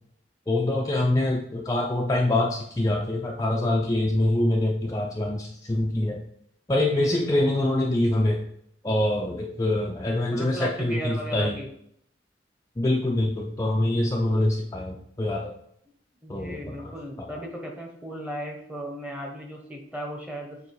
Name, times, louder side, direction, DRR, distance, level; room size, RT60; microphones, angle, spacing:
voice 1, 0.5-6.2 6.7-8.4 8.8-11.6 12.8-15.5 16.3-17.4, left 1 dB, 20° left, -1 dB, 0.5 m, -25 dB
voice 2, 6.9-7.3 10.3-11.7 16.2-20.6, equal, 5° right, 0 dB, 1.1 m, -36 dB
7.5 x 3.0 x 4.7 m, 0.71 s
head